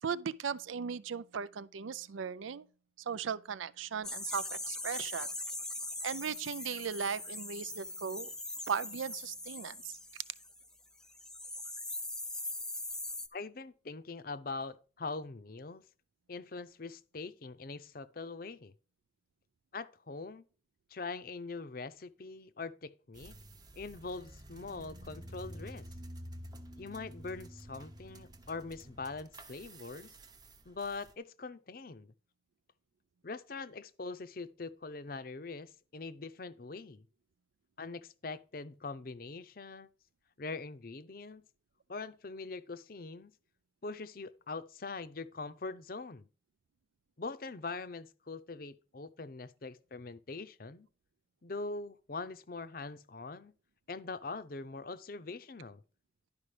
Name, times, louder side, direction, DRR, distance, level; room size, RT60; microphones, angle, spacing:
voice 1, 0.0-2.7 3.1-5.3 6.0-8.3 8.7-10.0, right 6 dB, 85° right, 0.5 m, -37 dB
sound 1, 4.0-10.7 11.0-13.3, left 2 dB, 5° left, 0.4 m, -41 dB
voice 2, 13.3-15.8 16.3-18.7 19.7-20.4 20.9-23.3 23.8-25.8 26.8-30.1 30.6-32.1 33.2-37.0 37.8-39.9 40.4-41.4 41.9-43.3 43.8-46.3 47.2-50.9 51.4-53.5 53.9-55.8, left 3 dB, 45° left, 0.6 m, -43 dB
sound 2, 23.1-31.1, right 1 dB, 20° right, 0.8 m, -50 dB
11.5 x 5.0 x 4.9 m
head